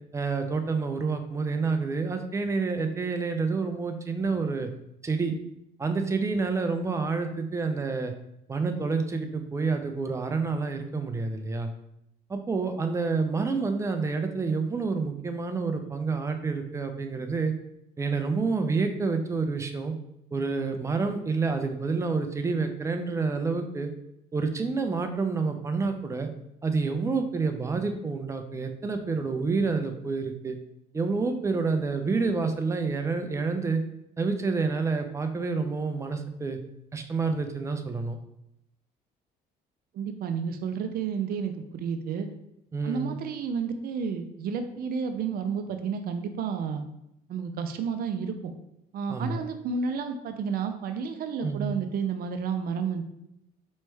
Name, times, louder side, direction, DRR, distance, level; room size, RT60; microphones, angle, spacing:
voice 1, 0.1-4.7 5.0-5.3 5.8-8.1 8.5-11.7 12.3-17.5 18.0-19.9 20.3-23.9 24.3-26.3 26.6-30.6 30.9-33.8 34.2-36.6 36.9-38.2 42.7-43.2 49.1-49.4 51.4-51.7, right 4 dB, 15° right, 6 dB, 0.5 m, -28 dB
voice 2, 39.9-42.3 42.8-46.8 47.3-48.5 48.9-53.0, right 6 dB, 65° right, 8 dB, 0.5 m, -31 dB
4.5 x 3.2 x 3.2 m, 0.81 s
cardioid pair, 110°, 17 cm